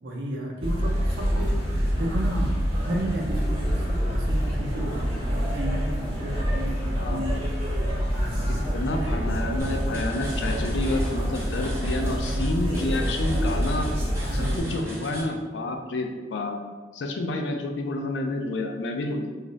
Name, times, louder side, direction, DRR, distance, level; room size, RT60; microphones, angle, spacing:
voice 1, 0.0-7.4 8.1-8.6 9.1-9.3 14.3-14.8, right 1 dB, 75° right, -1 dB, 0.6 m, -33 dB
sound 1, 0.6-14.6, equal, 35° right, 1.2 m, -27 dB
sound 2, 0.8-11.7, equal, 35° left, 0.8 m, -37 dB
voice 2, 8.7-13.9 14.3-16.6 16.9-19.3, left 2 dB, 85° left, 4 dB, 0.4 m, -29 dB
sound 3, 9.6-15.2, equal, 15° right, 0.6 m, -36 dB
2.4 x 2.0 x 3.8 m, 1.3 s
head